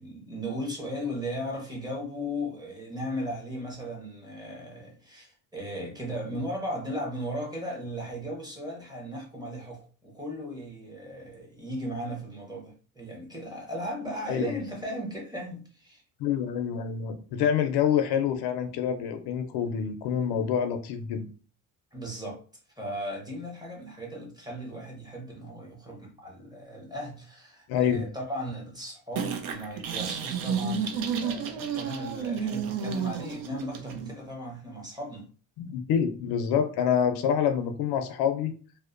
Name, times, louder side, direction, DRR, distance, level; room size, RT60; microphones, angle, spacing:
voice 1, 0.0-16.0 21.9-22.4 22.8-35.3, equal, 10° right, 0.9 m, -36 dB
voice 2, 16.2-21.3 27.7-28.0 35.6-38.5, left 8 dB, 70° left, 0.5 m, -27 dB
sound 1, 29.2-34.1, right 6 dB, 55° right, 0.5 m, -31 dB
2.7 x 2.1 x 2.4 m
cardioid pair, 110°, 40 cm